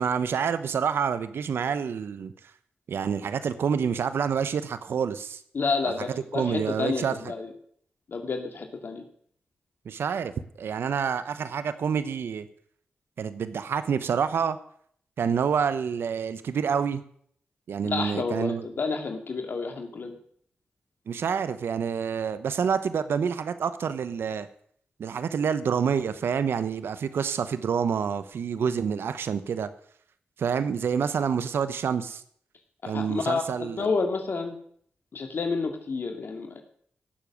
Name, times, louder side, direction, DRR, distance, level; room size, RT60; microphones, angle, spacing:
voice 1, 0.0-2.3 2.9-5.4 6.1-7.2 9.9-10.3 10.6-12.5 13.2-14.6 15.2-17.0 17.7-18.7 21.1-24.5 25.0-29.7 30.4-32.2 32.9-33.9, right 7 dB, 80° right, 13 dB, 0.8 m, -27 dB
voice 2, 5.5-7.5 8.1-9.0 17.8-20.2 32.8-34.6 35.1-36.6, left 4 dB, 65° left, 4 dB, 2.3 m, -30 dB
17.5 x 7.1 x 6.2 m, 0.62 s
supercardioid pair, 40°, 4 cm